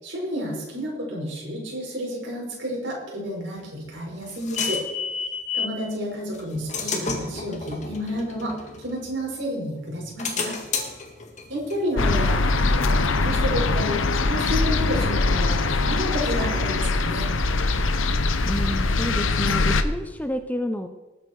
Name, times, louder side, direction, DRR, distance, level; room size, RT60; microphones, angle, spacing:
voice 1, 0.0-4.8 5.5-10.6 11.5-17.3, equal, 65° right, -2 dB, 5.5 m, -30 dB
sound 1, 3.6-5.8 6.3-9.4 9.9-13.3, left 4 dB, 35° left, 1.8 m, -32 dB
sound 2, 12.0-19.8, left 3 dB, 85° left, 0.9 m, -22 dB
voice 2, 18.4-20.9, equal, 10° left, 8 dB, 0.5 m, -29 dB
19.0 x 8.9 x 4.6 m, 1.2 s
head